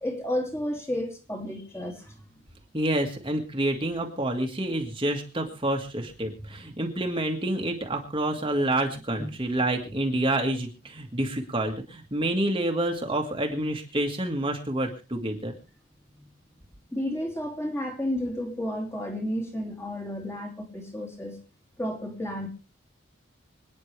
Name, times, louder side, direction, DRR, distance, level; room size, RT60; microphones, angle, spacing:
voice 1, 0.0-2.2 9.2-9.3 16.2-16.3 16.9-21.4 21.8-22.5, left 1 dB, 15° left, 2 dB, 2.5 m, -32 dB
voice 2, 2.7-15.5, right 1 dB, 25° right, 2 dB, 1.7 m, -28 dB
26.0 x 9.6 x 3.3 m, 0.33 s
head